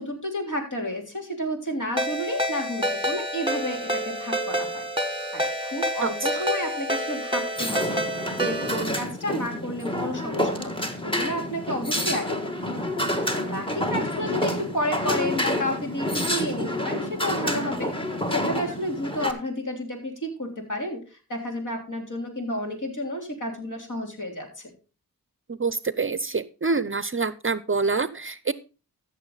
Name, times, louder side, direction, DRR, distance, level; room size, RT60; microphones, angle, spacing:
voice 1, 0.0-5.5 5.7-24.7, equal, 55° left, 2 dB, 3.5 m, -31 dB
Ringtone, 2.0-8.8, equal, 15° right, 1.5 m, -28 dB
voice 2, 6.0-6.4 25.5-28.5, right 4 dB, 35° right, 16 dB, 0.6 m, -26 dB
sound 1, 7.6-19.3, left 1 dB, 15° left, 1.6 m, -28 dB
14.0 x 6.7 x 3.9 m, 0.32 s
cardioid pair, 45°, 36 cm